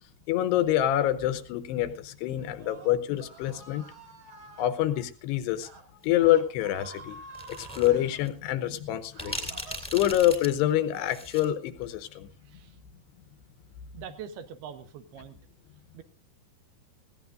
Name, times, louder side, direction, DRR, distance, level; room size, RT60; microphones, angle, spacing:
voice 1, 0.3-3.9 4.6-5.7 6.0-7.2 7.5-9.6 9.9-12.3, left 12 dB, 85° left, 11 dB, 3.0 m, -26 dB
Screaming, 2.3-4.7 5.5-5.8 6.1-8.2 8.8-10.1, right 3 dB, 40° right, 2.1 m, -48 dB
sound 1, 7.3-7.9 8.2-8.3 9.2-11.5, left 1 dB, ahead, 1.4 m, -38 dB
voice 2, 12.4-12.8 13.9-15.4 15.9-16.0, right 8 dB, 75° right, 9 dB, 2.9 m, -43 dB
19.0 x 16.0 x 2.6 m, 0.35 s
omnidirectional pair, 4.8 m